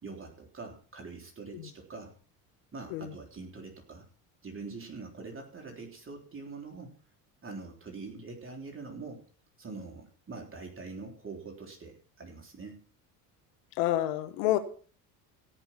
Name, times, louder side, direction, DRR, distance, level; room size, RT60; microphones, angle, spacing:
voice 1, 0.0-2.1 2.7-4.1 4.4-6.9 7.4-9.2 9.6-12.8, right 4 dB, 30° right, 3.5 m, -44 dB
voice 2, 13.8-14.6, left 14 dB, 75° left, 1.6 m, -28 dB
17.0 x 5.8 x 5.9 m
supercardioid pair, 80°, 44 cm